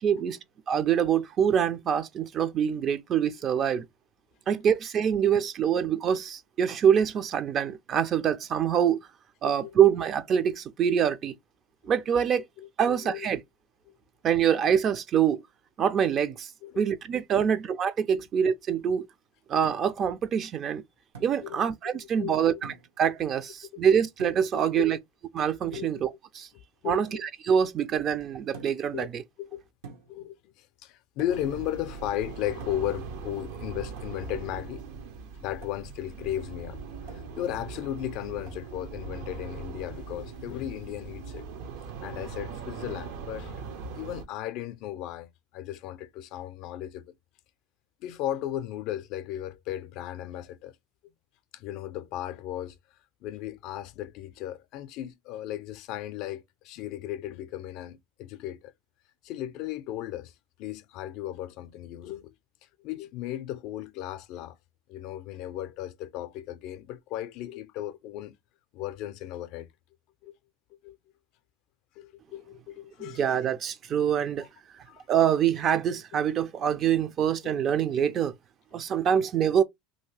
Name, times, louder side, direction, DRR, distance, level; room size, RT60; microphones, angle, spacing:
voice 1, 0.0-0.4 0.7-3.9 4.5-9.1 9.4-11.3 11.8-12.5 12.8-13.4 14.2-15.4 15.8-16.5 16.8-19.1 19.5-20.8 21.2-25.0 25.3-26.5 26.8-29.2 73.0-74.5 75.1-78.3 78.7-79.6, right 8 dB, 40° right, 0.4 m, -25 dB
voice 2, 12.9-13.3 16.6-16.9 17.3-17.5 18.2-18.3 21.4-21.6 22.2-22.6 24.7-24.9 25.7-25.9 26.5-27.2 28.9-29.1 29.4-29.6 30.1-34.8 35.4-41.5 42.0-43.6 44.0-47.1 48.0-50.7 51.5-52.8 53.2-58.7 59.2-60.3 60.6-62.3 62.8-64.6 64.9-68.4 68.7-69.7 70.2-70.3 70.8-71.0 72.0-73.4 74.9-75.1 77.4-77.6, left 12 dB, 60° left, 0.4 m, -36 dB
sound 1, 19.6-20.1 21.1-21.4 22.6-23.0 24.2-24.6 25.7-26.0 28.5-28.9 29.8-30.2 31.2-31.5 32.6-33.0 34.0-34.2 35.6-35.9 37.1-37.4 38.4-38.7, right 5 dB, 90° right, 1.0 m, -47 dB
sound 2, 31.3-44.2, right 5 dB, 75° right, 0.7 m, -40 dB
2.8 x 2.7 x 3.1 m
supercardioid pair, 105°, 0 cm